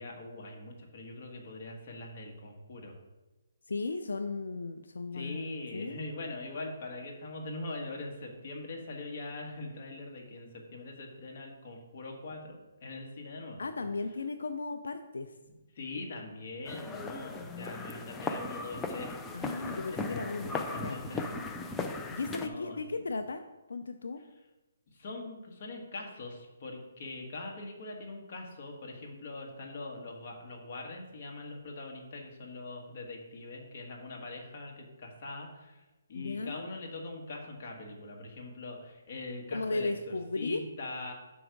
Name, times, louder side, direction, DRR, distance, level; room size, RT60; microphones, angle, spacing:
voice 1, 0.0-2.9 5.1-13.6 15.7-19.1 19.5-21.5 22.0-23.1 24.9-35.8 36.1-41.1, left 2 dB, 45° left, 0 dB, 1.4 m, -42 dB
voice 2, 3.7-5.5 5.7-6.0 13.6-15.4 19.3-21.0 21.9-23.4 23.7-24.2 36.1-36.7 39.5-40.6, left 3 dB, 85° left, 7 dB, 0.4 m, -35 dB
sound 1, 16.7-22.5, left 3 dB, 10° left, 0.4 m, -37 dB
5.9 x 4.7 x 5.1 m, 1.1 s
hypercardioid pair, 160°, 0 cm